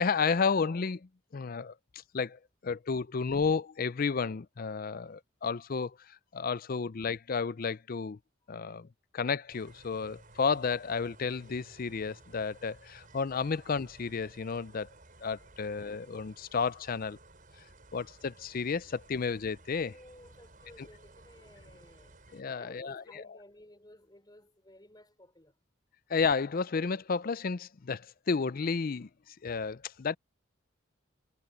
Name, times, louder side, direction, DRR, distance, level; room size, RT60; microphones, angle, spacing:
voice 1, 0.0-1.7 2.1-8.2 8.5-8.9 9.1-14.9 15.2-17.2 17.9-19.9 20.8-20.9 22.3-23.2 26.1-30.2, left 5 dB, 45° left, 0.5 m, -32 dB
sound 1, 9.5-22.4, right 2 dB, 45° right, 6.4 m, -56 dB
voice 2, 19.7-22.2 22.5-25.5, left 1 dB, 20° left, 5.6 m, -55 dB
head